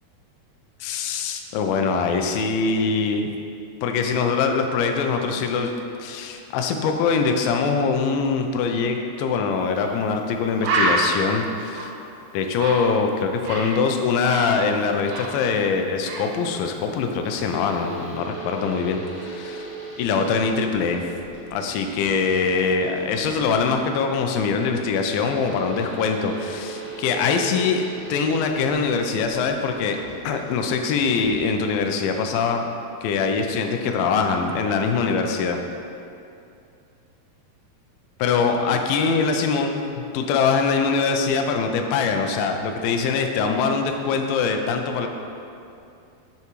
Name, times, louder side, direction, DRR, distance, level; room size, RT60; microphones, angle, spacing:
voice 1, 0.8-3.3 3.8-5.7 6.0-11.9 12.3-19.7 20.0-21.1 21.5-27.8 28.1-32.6 33.0-35.6 38.2-39.9 40.1-45.1, left 5 dB, 80° left, 4 dB, 2.1 m, -23 dB
Bird, 9.8-9.9 10.2-10.3 10.6-13.8 14.1-15.7 16.0-16.3, right 2 dB, 75° right, 1.9 m, -27 dB
sound 1, 17.2-23.8 25.2-31.9, right 2 dB, 60° left, 2.0 m, -39 dB
6.6 x 5.7 x 3.1 m, 2.6 s
omnidirectional pair, 4.5 m